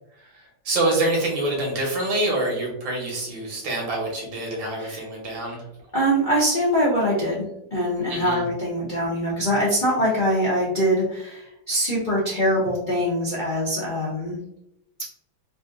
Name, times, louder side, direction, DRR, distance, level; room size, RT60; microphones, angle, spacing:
voice 1, 0.6-5.6 8.1-8.4, right 2 dB, 75° right, -1 dB, 1.6 m, -26 dB
voice 2, 5.9-7.4 7.7-14.4, equal, 65° left, -7 dB, 0.4 m, -23 dB
3.6 x 2.5 x 2.4 m, 0.81 s
omnidirectional pair, 2.1 m